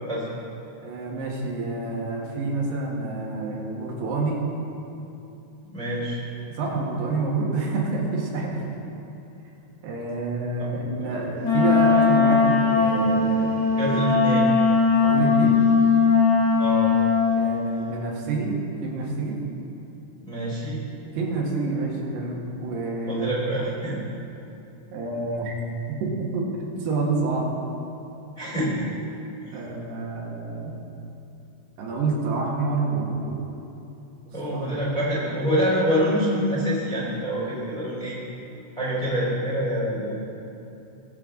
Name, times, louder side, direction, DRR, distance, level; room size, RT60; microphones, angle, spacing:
voice 1, 0.8-4.5 6.6-8.8 9.8-14.2 15.0-15.6 17.4-19.4 21.2-23.3 24.9-25.5 26.0-26.5 26.8-27.5 29.5-30.9 31.8-33.5 34.3-34.8, right 3 dB, 80° right, -2 dB, 3.7 m, -28 dB
voice 2, 5.6-6.2 11.0-11.1 13.8-14.5 16.6-16.9 20.2-20.8 23.1-24.0 28.4-28.9 29.4-29.6 34.3-38.2 38.8-40.2, equal, 10° left, -6 dB, 2.9 m, -26 dB
Wind instrument woodwind instrument, 11.4-17.5, left 5 dB, 85° left, 5.4 m, -19 dB
21.5 x 7.8 x 3.8 m, 2.9 s
omnidirectional pair, 4.7 m